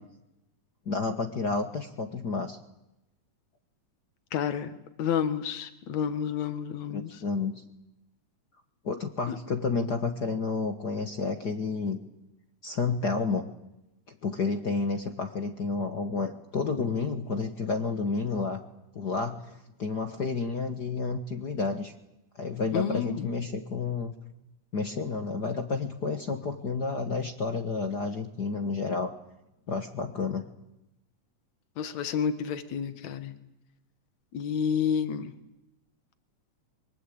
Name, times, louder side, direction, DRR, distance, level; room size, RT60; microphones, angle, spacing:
voice 1, 0.8-2.6 6.9-7.6 8.8-12.0 12.6-13.5 14.1-18.6 18.9-21.9 22.4-24.1 24.7-29.1 29.7-30.5, left 4 dB, 45° left, 7 dB, 1.4 m, -30 dB
voice 2, 4.3-4.7 5.0-7.1 9.3-9.4 22.7-23.3 31.8-33.4 34.3-35.3, left 7 dB, 65° left, 11 dB, 2.8 m, -30 dB
24.5 x 23.5 x 8.6 m, 0.90 s
omnidirectional pair, 3.6 m